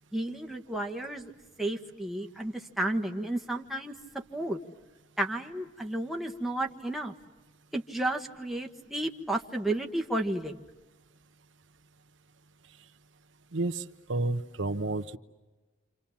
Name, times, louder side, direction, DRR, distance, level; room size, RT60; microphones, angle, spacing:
voice 1, 0.1-1.3 1.6-3.9 4.3-4.6 5.2-7.1 7.7-10.6, right 1 dB, ahead, 1 dB, 1.5 m, -32 dB
voice 2, 13.5-13.8 14.1-15.2, right 2 dB, 85° right, 9 dB, 1.1 m, -30 dB
29.5 x 27.5 x 7.3 m, 1.2 s
head